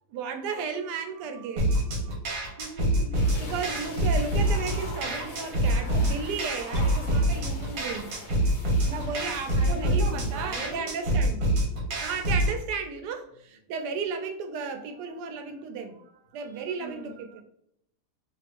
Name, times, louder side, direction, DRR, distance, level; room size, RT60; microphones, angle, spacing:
voice 1, 0.1-2.4 3.4-8.2 8.8-11.5 12.0-16.0 16.3-17.4, right 5 dB, 90° right, 6 dB, 1.2 m, -34 dB
sound 1, 1.6-12.6, right 1 dB, 65° right, 1.3 m, -26 dB
voice 2, 2.6-3.4 9.1-10.9 16.5-17.2, right 2 dB, 50° right, -1 dB, 0.6 m, -40 dB
sound 2, 3.1-10.8, left 2 dB, 75° left, 0.4 m, -43 dB
2.9 x 2.5 x 3.4 m, 0.73 s
omnidirectional pair, 1.7 m